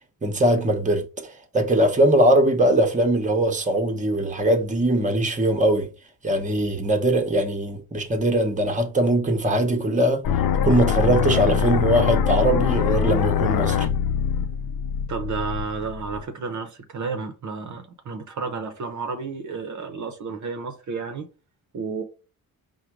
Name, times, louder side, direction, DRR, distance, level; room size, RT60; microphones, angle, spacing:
voice 1, 0.2-5.9 6.2-10.2 10.6-13.9, right 1 dB, 20° right, 0.9 m, -21 dB
sound 1, 10.2-16.2, left 7 dB, 75° left, 0.5 m, -23 dB
voice 2, 15.1-21.3 21.7-22.0, right 4 dB, 55° right, 0.7 m, -31 dB
4.9 x 2.2 x 4.5 m
wide cardioid pair, 110°, 35 cm